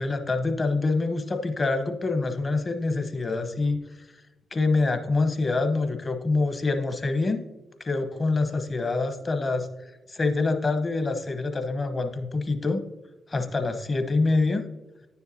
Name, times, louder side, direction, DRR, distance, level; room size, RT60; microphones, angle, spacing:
voice 1, 0.0-3.8 4.5-7.4 7.8-9.7 10.1-12.8 13.3-14.6, left 3 dB, 40° left, 7 dB, 1.0 m, -25 dB
9.9 x 6.9 x 2.8 m, 1.1 s
hypercardioid pair, 45°, 0 cm